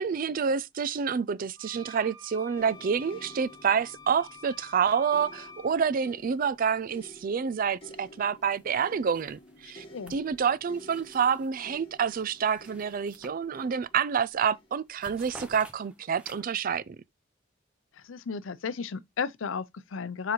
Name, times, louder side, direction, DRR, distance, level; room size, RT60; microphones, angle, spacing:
voice 1, 0.0-9.8 10.1-17.0, right 6 dB, 45° right, 0.4 m, -28 dB
sound 1, 1.6-5.7, left 3 dB, 60° right, 2.3 m, -49 dB
sound 2, 2.6-15.6 16.5-16.6, equal, 30° left, 1.3 m, -52 dB
sound 3, 8.5-8.8 9.1-11.6 12.0-13.9 14.2-14.5 14.7-16.7, right 1 dB, 5° right, 0.8 m, -52 dB
voice 2, 17.9-20.3, left 5 dB, 80° left, 0.6 m, -34 dB
7.1 x 4.9 x 3.0 m
head